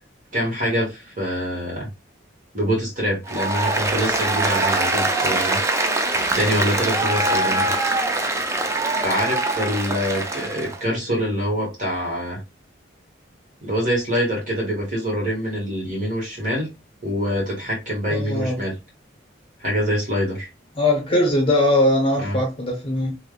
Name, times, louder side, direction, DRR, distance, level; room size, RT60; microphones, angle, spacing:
voice 1, 0.3-1.9 2.5-5.6 6.3-7.7 9.0-12.4 13.6-16.7 17.0-18.7 19.6-20.5 22.2-22.4, equal, 40° right, 1.8 m, -25 dB
Applause, 3.3-10.8, right 2 dB, 15° right, 0.4 m, -23 dB
voice 2, 18.1-18.6 20.7-23.1, left 1 dB, 30° left, 0.9 m, -20 dB
3.5 x 2.9 x 2.3 m
head